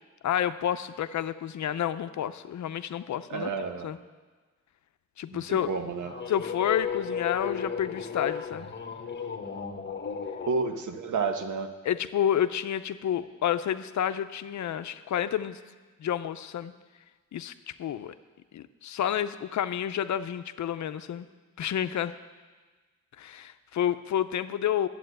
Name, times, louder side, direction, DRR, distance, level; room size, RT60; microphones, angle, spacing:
voice 1, 0.2-3.5 3.8-4.0 5.2-5.7 6.3-8.7 11.8-15.6 16.0-16.7 17.3-17.5 17.8-18.1 18.5-21.3 21.6-22.1 23.2-24.9, left 10 dB, 65° left, 12 dB, 0.6 m, -29 dB
voice 2, 3.3-3.9 5.3-6.1 10.5-11.7, right 4 dB, 75° right, 7 dB, 1.2 m, -31 dB
sound 1, 5.7-10.5, left 7 dB, 35° left, 1.1 m, -35 dB
12.0 x 8.4 x 7.9 m, 1.3 s
wide cardioid pair, 120°, 30 cm